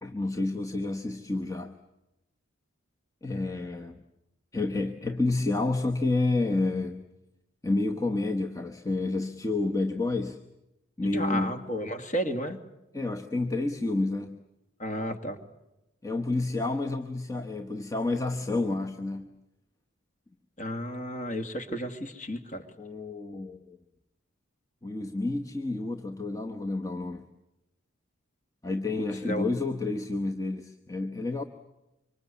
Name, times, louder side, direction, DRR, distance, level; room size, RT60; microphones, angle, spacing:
voice 1, 0.0-1.7 3.2-4.0 4.5-7.1 7.6-10.4 11.0-11.6 12.9-14.4 16.0-19.4 22.8-23.8 24.8-27.2 28.6-31.4, left 2 dB, 15° left, 2 dB, 1.0 m, -29 dB
voice 2, 11.0-12.6 14.8-15.4 20.6-22.6 29.0-29.4, equal, 35° left, 8 dB, 2.1 m, -32 dB
25.5 x 25.0 x 8.3 m, 0.92 s
head